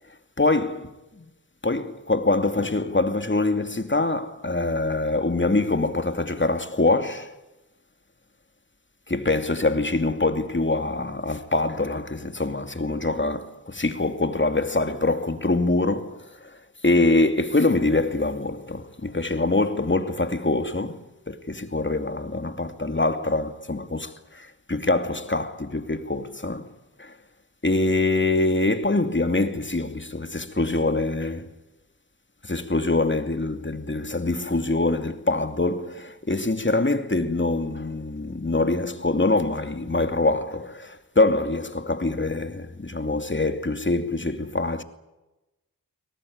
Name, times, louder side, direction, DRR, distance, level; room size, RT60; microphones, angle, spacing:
voice 1, 0.4-0.8 1.2-1.3 1.6-7.3 9.1-26.7 27.0-27.1 27.6-31.5 32.4-44.8, left 2 dB, 30° left, 2.7 m, -24 dB
23.5 x 18.5 x 9.7 m
cardioid pair, 40°, 37 cm